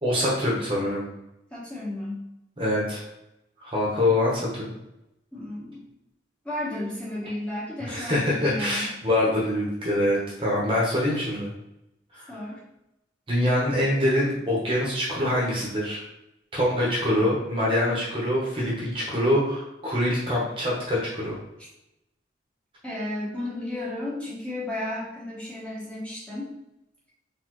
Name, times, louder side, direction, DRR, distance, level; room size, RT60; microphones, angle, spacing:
voice 1, 0.0-1.1 2.6-3.0 3.6-4.6 7.8-11.5 12.1-12.3 13.3-16.0 16.5-21.3, left 1 dB, 30° right, -5 dB, 1.0 m, -24 dB
voice 2, 1.5-2.2 5.3-5.8 6.4-8.9 12.3-12.6 19.1-19.2 22.8-26.5, left 1 dB, 5° left, -8 dB, 1.2 m, -33 dB
4.1 x 3.4 x 3.1 m, 0.86 s
head